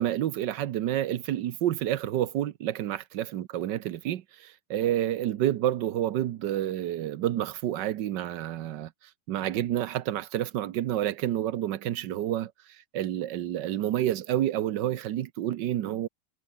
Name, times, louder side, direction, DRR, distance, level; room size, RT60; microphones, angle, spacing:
voice 1, 0.0-8.9 9.3-16.1, right 12 dB, 65° right, 1.4 m, -29 dB
omnidirectional pair, 2.3 m